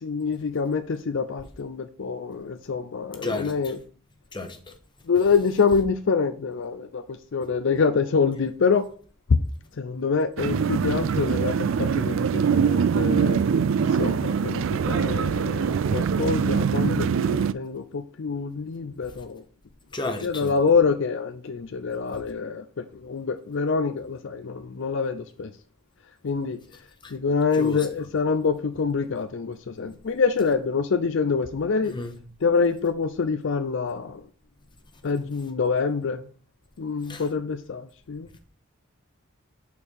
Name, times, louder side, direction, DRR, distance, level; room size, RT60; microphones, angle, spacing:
voice 1, 0.0-3.8 5.1-8.9 9.8-13.4 14.0-19.4 20.2-25.5 26.2-26.6 27.1-31.9 32.4-34.2 35.0-36.2 36.8-38.3, left 5 dB, 60° left, 0.5 m, -26 dB
voice 2, 3.2-3.7 4.3-4.7 19.9-20.5 27.0-27.1 27.5-27.9 31.8-32.2 37.1-37.3, left 2 dB, 20° left, 1.0 m, -32 dB
sound 1, 10.4-17.5, right 6 dB, 60° right, 0.3 m, -23 dB
5.5 x 4.4 x 6.3 m
head